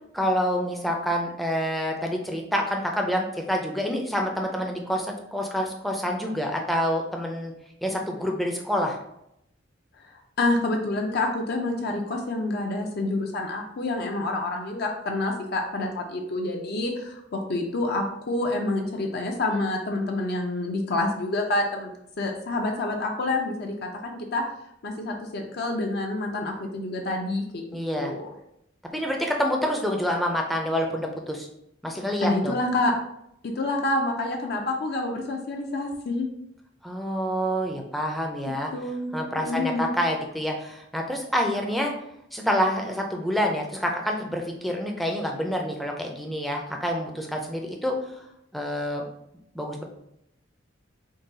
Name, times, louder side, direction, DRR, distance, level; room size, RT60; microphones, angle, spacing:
voice 1, 0.1-7.5 7.8-9.0 27.7-28.1 28.9-31.5 31.8-32.6 36.8-38.7 39.1-41.9 42.3-48.2 48.5-49.1 49.5-49.8, equal, ahead, 1 dB, 0.4 m, -27 dB
voice 2, 10.4-21.9 22.2-24.4 24.8-27.6 27.9-28.3 32.2-32.9 33.4-36.3 38.7-39.9, left 2 dB, 55° left, 1 dB, 0.5 m, -28 dB
3.8 x 2.3 x 3.8 m, 0.79 s
head